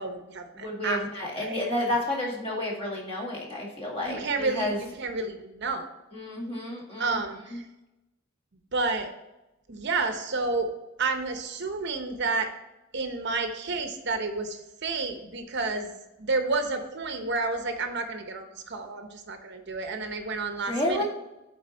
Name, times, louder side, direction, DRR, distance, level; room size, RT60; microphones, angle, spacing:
voice 1, 0.0-1.0 1.4-1.6 4.0-5.9 7.0-7.7 8.7-9.1 9.7-10.7 11.0-12.5 12.9-15.9 16.2-21.0, right 3 dB, 60° right, 6 dB, 0.8 m, -30 dB
voice 2, 0.6-4.8 6.1-7.2 7.5-7.6 20.7-21.0, left 1 dB, 30° left, -3 dB, 2.1 m, -30 dB
8.5 x 4.2 x 4.0 m, 0.97 s
head